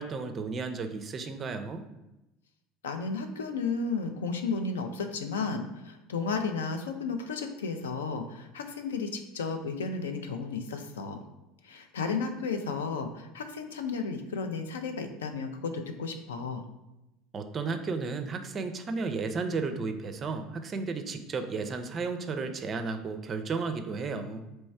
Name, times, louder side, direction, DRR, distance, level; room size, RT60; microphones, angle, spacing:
voice 1, 0.0-1.8 17.3-24.4, right 4 dB, 30° right, 8 dB, 0.4 m, -33 dB
voice 2, 2.8-11.2 11.6-16.6, left 4 dB, 70° left, 6 dB, 0.4 m, -33 dB
3.1 x 3.1 x 4.5 m, 0.95 s
figure-of-eight pair, 70°, 0 cm